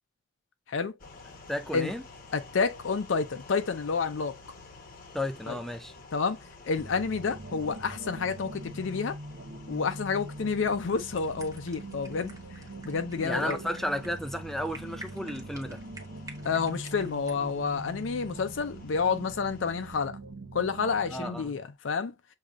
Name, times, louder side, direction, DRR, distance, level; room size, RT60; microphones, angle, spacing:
sound 1, 1.0-20.1, left 3 dB, 45° left, 0.9 m, -51 dB
voice 1, 1.5-2.0 5.1-5.9 13.2-15.8 21.1-21.5, left 1 dB, ahead, 0.3 m, -33 dB
voice 2, 2.3-4.3 5.5-5.6 6.1-6.4 6.7-9.2 9.7-12.3 12.8-13.6 16.4-20.2 20.5-22.1, left 5 dB, 75° left, 0.5 m, -29 dB
sound 2, 6.8-21.4, right 2 dB, 65° right, 0.7 m, -43 dB
sound 3, 11.0-17.4, right 2 dB, 15° right, 1.0 m, -49 dB
6.4 x 2.8 x 2.4 m
head